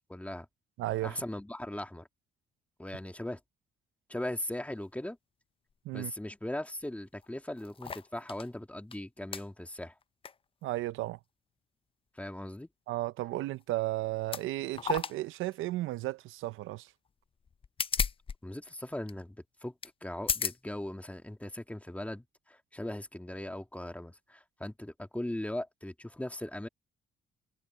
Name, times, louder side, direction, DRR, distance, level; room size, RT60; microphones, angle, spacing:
voice 1, 0.1-0.5 1.0-2.1 2.8-3.4 4.1-5.2 5.9-10.0 12.2-12.7 18.4-19.4 19.6-19.7 20.0-26.7, left 1 dB, 5° left, 2.0 m, -39 dB
voice 2, 0.8-1.2 5.9-6.1 10.6-11.2 12.9-16.9, right 16 dB, 85° right, 0.6 m, -34 dB
sound 1, 6.8-6.9 7.1-8.5 8.9-9.0 9.3-9.5 10.0-10.3 10.7-10.8 13.5-13.6 14.2-14.5 14.7-15.2 15.5-15.6 17.4-18.4 18.6-18.7 19.1-19.2 19.8-19.9 20.2-20.6 21.3-21.4, left 6 dB, 25° left, 0.5 m, -34 dB
cardioid pair, 90°, 20 cm